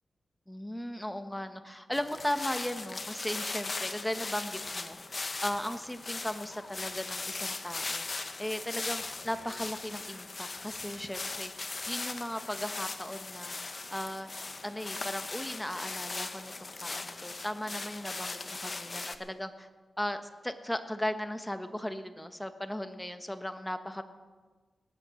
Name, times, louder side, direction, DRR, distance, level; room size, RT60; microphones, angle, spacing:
voice 1, 0.5-5.0 5.4-8.1 8.4-11.5 11.9-13.5 13.9-14.3 14.6-19.7 20.0-24.0, left 1 dB, 5° left, 8 dB, 1.1 m, -37 dB
sound 1, 1.9-19.2, left 3 dB, 40° left, 1.0 m, -39 dB
19.0 x 8.6 x 7.5 m, 1.3 s
wide cardioid pair, 90°, 0 cm